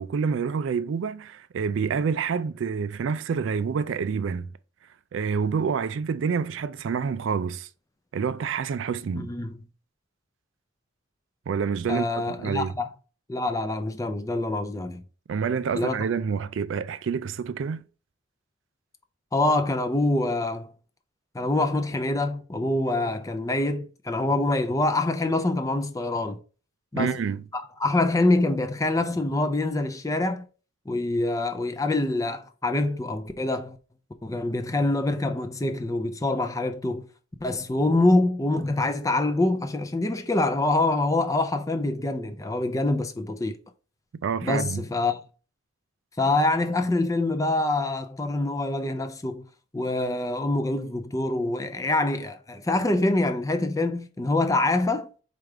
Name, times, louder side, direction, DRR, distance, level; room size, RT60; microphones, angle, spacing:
voice 1, 0.0-4.5 5.1-7.7 8.1-9.3 11.5-12.1 12.4-12.7 15.3-17.8 27.0-27.4 44.2-44.8, right 6 dB, 65° right, 0.3 m, -27 dB
voice 2, 9.1-9.6 11.9-12.9 13.3-15.0 15.7-16.0 19.3-20.7 21.3-26.4 26.9-27.2 27.5-30.4 30.9-33.8 34.2-37.1 37.4-43.6 44.4-45.2 46.2-49.4 49.7-55.1, left 2 dB, 15° left, 0.4 m, -25 dB
4.5 x 2.4 x 4.8 m
head